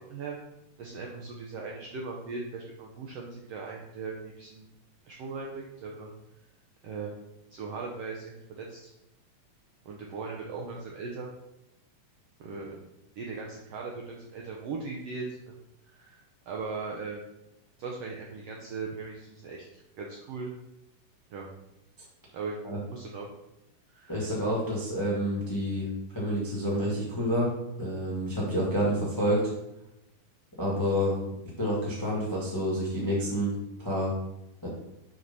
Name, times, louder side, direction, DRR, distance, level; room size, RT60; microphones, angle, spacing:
voice 1, 0.1-0.4 0.8-4.7 5.0-6.1 6.8-7.2 7.5-8.9 9.8-11.3 12.4-12.8 13.2-15.6 15.8-16.2 16.5-17.2 17.8-20.5 21.3-21.5 22.3-22.6 22.9-23.3 23.9-24.2, right 4 dB, 75° right, -1 dB, 1.5 m, -38 dB
voice 2, 24.1-25.9 26.1-27.5 27.8-29.4 30.6-31.2 31.6-34.1 34.6-34.7, equal, 15° left, -5 dB, 0.7 m, -28 dB
5.1 x 4.7 x 5.4 m, 0.88 s
omnidirectional pair, 3.6 m